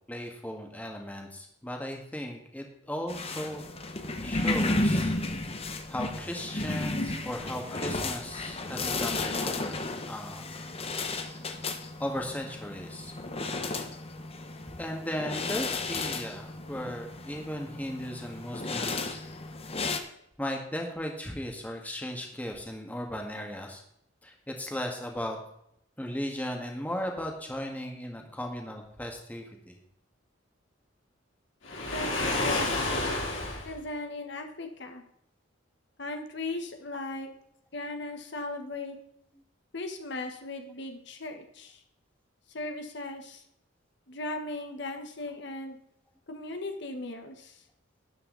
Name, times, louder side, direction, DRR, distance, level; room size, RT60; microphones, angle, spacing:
voice 1, 0.1-3.6 4.2-5.1 5.9-9.8 10.1-10.7 12.0-13.1 14.8-19.2 20.4-23.8 24.2-25.4 26.0-29.7, equal, 10° left, 1 dB, 1.8 m, -36 dB
sound 1, 3.1-20.0, left 2 dB, 30° left, 1.1 m, -33 dB
Waves surf, 31.6-33.7, left 2 dB, 75° left, 3.4 m, -29 dB
voice 2, 31.9-32.8 33.6-35.0 36.0-37.3 37.7-39.0 39.7-41.8 42.5-43.4 44.1-45.8 46.3-47.6, left 2 dB, 60° left, 4 dB, 1.4 m, -37 dB
12.5 x 9.6 x 4.0 m, 0.73 s
head